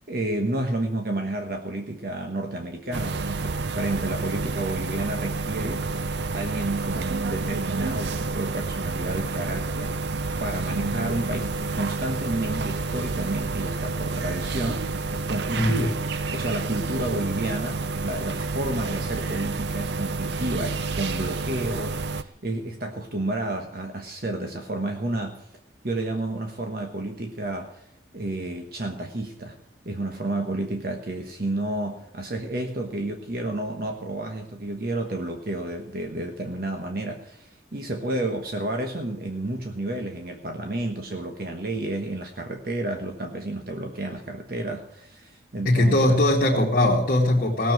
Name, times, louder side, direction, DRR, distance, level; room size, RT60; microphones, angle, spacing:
voice 1, 0.1-5.9 6.3-9.9 10.4-16.0 16.3-25.5 25.8-27.8 28.1-29.6 29.8-46.2, right 2 dB, 55° right, 3 dB, 1.3 m, -31 dB
sound 1, 2.9-22.2, right 3 dB, 70° right, 0.7 m, -29 dB
voice 2, 15.5-15.8 45.7-47.7, left 1 dB, 50° left, -5 dB, 2.0 m, -20 dB
17.5 x 7.2 x 7.6 m, 0.73 s
head